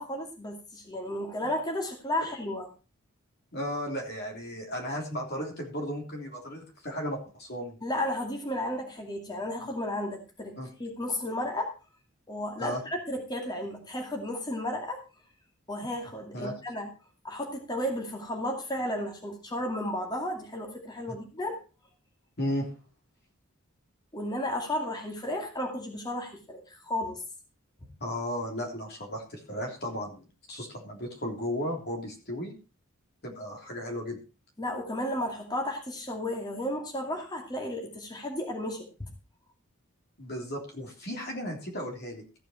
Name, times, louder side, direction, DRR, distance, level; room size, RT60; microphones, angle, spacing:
voice 1, 0.0-2.7 7.8-10.5 10.8-11.7 12.3-15.0 15.7-16.9 17.2-21.6 24.1-27.2 34.6-38.9, left 1 dB, 20° left, 2 dB, 2.3 m, -33 dB
voice 2, 3.5-7.8 10.6-10.7 12.6-12.8 16.3-16.6 21.1-21.2 22.4-22.7 28.0-32.5 33.2-34.2 40.2-42.2, equal, 50° left, 2 dB, 3.3 m, -35 dB
14.5 x 9.0 x 4.5 m, 0.32 s
head